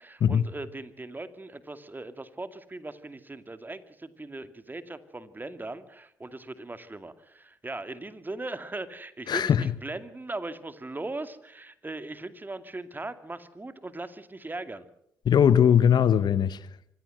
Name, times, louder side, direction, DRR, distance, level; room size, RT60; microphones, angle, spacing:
voice 1, 0.0-14.9, right 2 dB, 20° right, 2.4 m, -39 dB
voice 2, 9.3-9.7 15.2-16.6, left 8 dB, 55° left, 1.0 m, -20 dB
24.5 x 16.0 x 7.9 m
hypercardioid pair, 45°, 9 cm